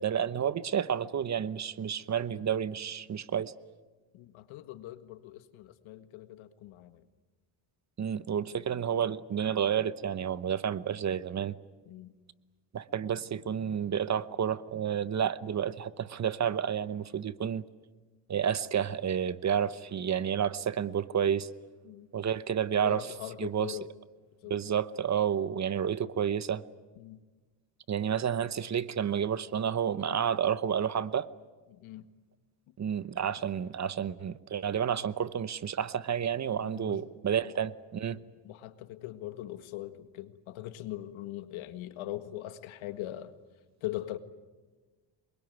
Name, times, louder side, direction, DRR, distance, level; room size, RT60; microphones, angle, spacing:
voice 1, 0.0-3.5 8.0-11.6 12.7-17.6 18.3-21.5 22.1-23.1 23.4-23.8 24.5-26.6 27.9-31.3 32.8-38.2, right 8 dB, 35° right, 1.0 m, -30 dB
voice 2, 4.1-7.0 11.9-12.1 21.8-22.1 22.8-23.9 24.4-24.6 27.0-27.2 30.1-30.2 31.7-32.1 36.6-37.0 37.4-37.5 38.4-43.3 43.8-44.2, left 14 dB, 80° left, 1.8 m, -41 dB
24.5 x 23.0 x 9.4 m
cardioid pair, 110°, 47 cm